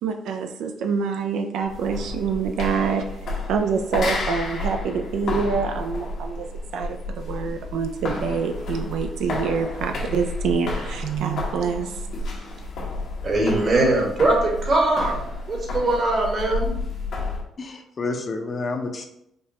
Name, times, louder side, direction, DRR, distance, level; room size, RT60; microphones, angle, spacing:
voice 1, 0.0-6.5 6.7-12.0, right 5 dB, 80° right, 5 dB, 0.3 m, -26 dB
sound 1, 1.6-17.5, left 2 dB, 75° left, 0.9 m, -31 dB
voice 2, 13.2-15.2 15.5-16.7, right 2 dB, 45° right, 0 dB, 1.1 m, -21 dB
voice 3, 17.6-19.1, left 3 dB, 40° left, 4 dB, 0.6 m, -29 dB
5.1 x 2.3 x 2.8 m, 0.78 s
cardioid pair, 90°, 0 cm